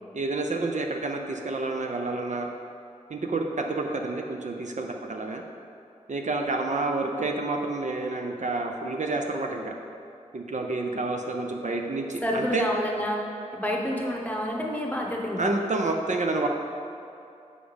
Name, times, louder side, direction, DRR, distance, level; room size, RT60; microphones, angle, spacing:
voice 1, 0.1-2.5 3.1-5.4 6.1-9.8 10.3-12.7 15.4-16.5, right 3 dB, 65° right, 2 dB, 0.6 m, -29 dB
voice 2, 12.2-13.2 13.5-15.5, equal, 10° left, -1 dB, 1.0 m, -28 dB
6.9 x 5.1 x 5.1 m, 2.6 s
wide cardioid pair, 75°, 13 cm